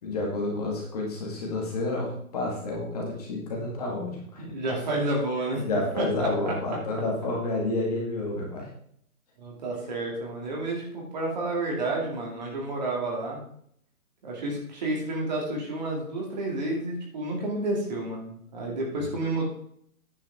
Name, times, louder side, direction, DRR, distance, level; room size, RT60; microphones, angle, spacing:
voice 1, 0.0-4.5 5.6-8.7 19.0-19.1, left 2 dB, 25° left, -1 dB, 1.9 m, -30 dB
voice 2, 4.4-5.7 6.0-6.8 9.4-13.4 14.2-19.4, right 2 dB, 30° right, -1 dB, 2.4 m, -30 dB
9.9 x 8.5 x 3.6 m, 0.66 s
hypercardioid pair, 165°, 45 cm